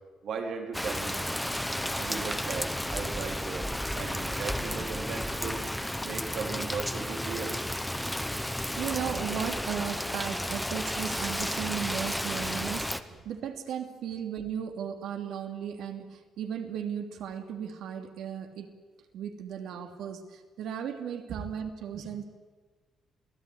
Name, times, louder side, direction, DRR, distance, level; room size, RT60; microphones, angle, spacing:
voice 1, 0.2-1.2 2.0-3.7 3.9-5.6 6.0-7.6 21.3-21.4 21.9-22.0, right 5 dB, 60° right, 3 dB, 3.9 m, -37 dB
Rain, 0.7-13.0, equal, 5° left, 1.0 m, -32 dB
voice 2, 8.5-18.7 19.1-22.2, right 8 dB, 75° right, 5 dB, 2.8 m, -36 dB
28.0 x 17.5 x 9.9 m, 1.4 s
cardioid pair, 155°, 0 cm